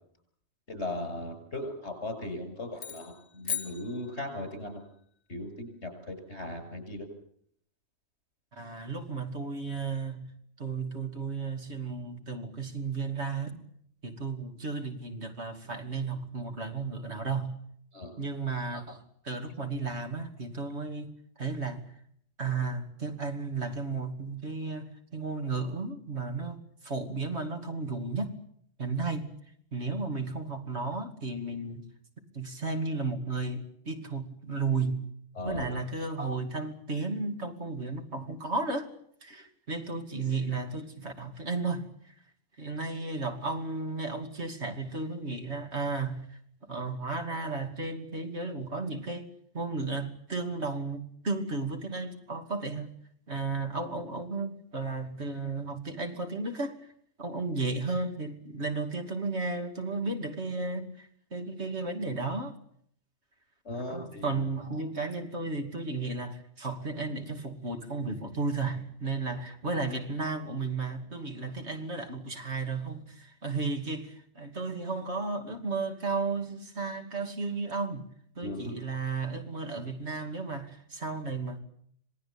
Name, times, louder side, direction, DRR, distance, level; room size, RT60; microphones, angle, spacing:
voice 1, 0.7-4.8 5.3-7.1 17.9-18.1 35.4-35.8 63.6-64.4 78.4-78.8, left 1 dB, 70° left, 7.3 m, -37 dB
sound 1, 2.8-4.7, left 7 dB, 55° left, 2.5 m, -38 dB
voice 2, 8.6-10.3 10.6-13.6 14.0-17.6 18.2-21.1 21.4-21.9 22.4-28.4 28.8-29.3 29.7-31.8 32.3-35.1 35.4-38.9 39.2-41.9 42.6-46.3 46.7-49.3 49.5-52.9 53.3-56.8 57.2-62.5 63.9-78.1 78.4-81.6, right 3 dB, 70° right, 3.0 m, -34 dB
26.5 x 18.5 x 8.8 m
omnidirectional pair, 1.2 m